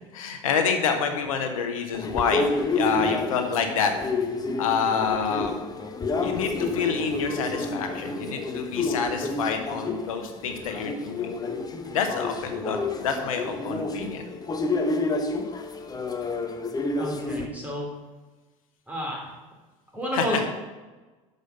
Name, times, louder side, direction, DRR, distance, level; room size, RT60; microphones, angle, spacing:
voice 1, 0.1-2.5 2.7-3.9 4.6-5.6 6.2-11.3 11.9-14.3 20.1-20.4, left 6 dB, 80° left, 6 dB, 1.0 m, -27 dB
sound 1, 1.9-17.5, left 3 dB, 20° left, 1.0 m, -29 dB
voice 2, 17.0-17.9 18.9-19.3 19.9-20.5, equal, 10° right, -2 dB, 3.0 m, -30 dB
6.4 x 5.3 x 6.6 m, 1.2 s
hypercardioid pair, 80°, 17 cm